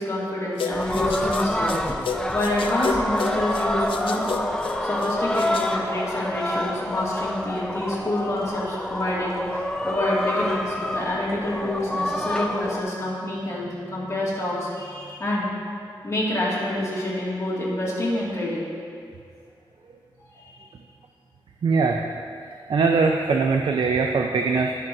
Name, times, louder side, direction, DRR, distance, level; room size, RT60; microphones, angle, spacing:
voice 1, 0.0-1.7 2.3-4.2 4.8-9.4 9.8-15.5 16.0-18.7 20.2-20.7, left 1 dB, 35° left, -7 dB, 2.2 m, -27 dB
sound 1, 0.6-5.7, left 5 dB, 85° left, 0.6 m, -33 dB
sound 2, 0.7-12.8, left 1 dB, 10° left, 0.4 m, -27 dB
voice 2, 21.6-22.0 22.4-24.7, right 4 dB, 65° right, 3 dB, 0.5 m, -22 dB
18.0 x 6.0 x 2.7 m, 2.4 s
wide cardioid pair, 150°, 9 cm